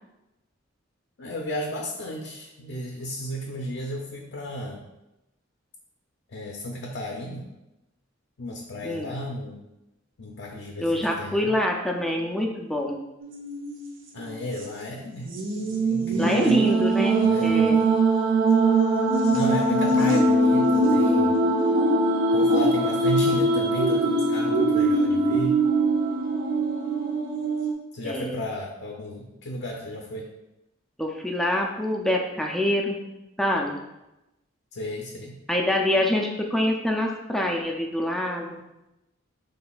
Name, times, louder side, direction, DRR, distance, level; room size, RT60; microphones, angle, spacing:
voice 1, 1.2-4.8 6.3-7.5 8.4-9.6 10.2-11.6 14.1-15.3 15.6-16.7 17.2-17.8 19.3-21.4 22.3-25.7 27.9-30.3 34.7-35.4, equal, 60° left, 0 dB, 0.5 m, -33 dB
voice 2, 10.8-13.0 16.2-17.8 20.0-20.1 28.0-28.4 31.0-33.0 33.4-33.8 35.5-38.6, left 1 dB, ahead, 0 dB, 0.4 m, -25 dB
sound 1, 13.2-13.8 14.2-14.3 15.3-27.7, right 2 dB, 70° right, 0.7 m, -22 dB
6.0 x 3.2 x 2.3 m, 0.94 s
head